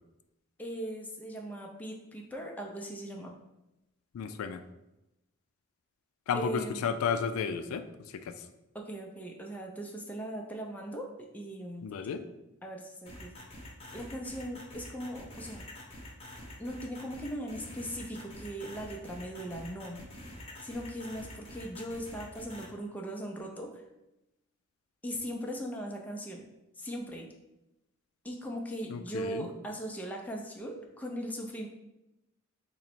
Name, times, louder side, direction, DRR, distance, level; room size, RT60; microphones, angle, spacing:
voice 1, 0.6-3.4 6.3-6.8 8.7-11.9 12.6-13.4 13.9-15.7 16.6-20.1 20.6-23.8 25.0-26.4 26.8-27.3 28.2-31.7, right 1 dB, 10° left, 0 dB, 0.4 m, -39 dB
voice 2, 4.1-4.6 6.3-7.8 8.2-8.3 11.8-12.2 28.9-29.5, left 6 dB, 80° left, 10 dB, 0.3 m, -32 dB
sound 1, 13.1-22.7, left 1 dB, 30° left, 0.8 m, -46 dB
3.8 x 2.1 x 4.4 m, 0.94 s
head